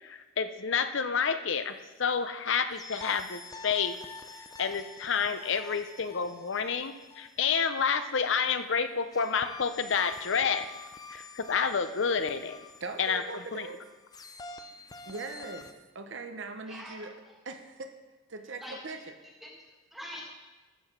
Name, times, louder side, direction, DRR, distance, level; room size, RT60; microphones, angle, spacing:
voice 1, 0.0-4.0 4.6-10.7 11.1-12.6 13.0-13.2 13.5-13.7, left 6 dB, 65° left, 10 dB, 0.6 m, -29 dB
sound 1, 2.7-8.3 9.1-15.7, left 3 dB, 20° left, 0.5 m, -47 dB
voice 2, 12.8-13.8 15.1-17.1 17.4-17.9 18.3-19.0, right 3 dB, 60° right, 7 dB, 0.8 m, -40 dB
voice 3, 16.7-17.1 18.6-18.9 19.4-20.2, equal, ahead, -3 dB, 1.5 m, -44 dB
14.0 x 4.9 x 5.8 m, 1.2 s
head